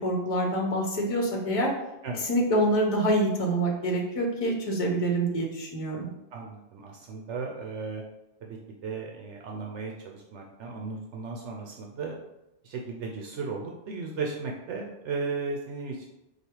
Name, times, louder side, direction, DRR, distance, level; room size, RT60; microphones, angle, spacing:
voice 1, 0.0-1.7 2.3-6.1, right 1 dB, 30° left, -1 dB, 0.9 m, -26 dB
voice 2, 6.3-8.0 8.4-12.2 12.6-16.1, right 4 dB, 80° right, 0 dB, 0.9 m, -35 dB
4.9 x 2.4 x 4.5 m, 0.93 s
omnidirectional pair, 1.2 m